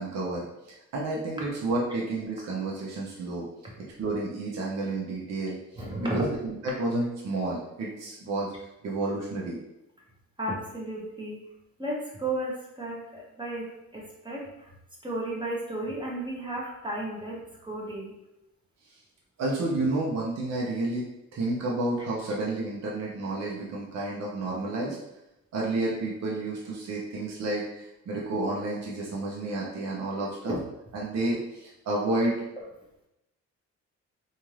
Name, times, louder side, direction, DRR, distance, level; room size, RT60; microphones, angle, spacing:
voice 1, 0.0-3.4 3.8-8.5 8.8-9.6 18.9-19.0 19.4-25.0 25.5-30.6 30.9-32.4, right 2 dB, 60° right, -3 dB, 0.7 m, -31 dB
voice 2, 5.8-6.3 10.4-11.4 11.8-14.7 15.0-18.2 30.5-30.6, right 1 dB, 15° right, -4 dB, 0.8 m, -33 dB
2.6 x 2.4 x 3.1 m, 0.88 s
cardioid pair, 90°, 30 cm